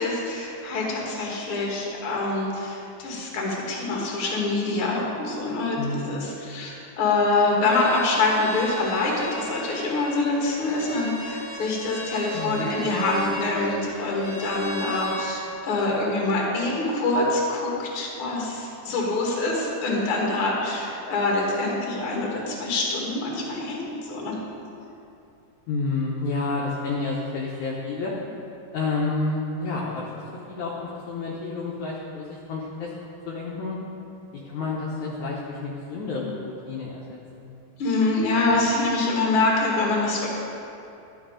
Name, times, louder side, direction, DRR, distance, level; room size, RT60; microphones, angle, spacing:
voice 1, 0.0-24.3 37.8-40.4, left 2 dB, 45° left, -2 dB, 2.1 m, -25 dB
voice 2, 5.8-6.3 12.3-12.8 25.7-28.1 28.7-30.2 30.5-32.9 33.3-33.8 34.4-37.5, left 3 dB, 70° left, -4 dB, 2.0 m, -30 dB
Bowed string instrument, 7.6-15.3, equal, 30° left, 1.6 m, -36 dB
12.0 x 7.2 x 5.1 m, 2.7 s
omnidirectional pair, 4.0 m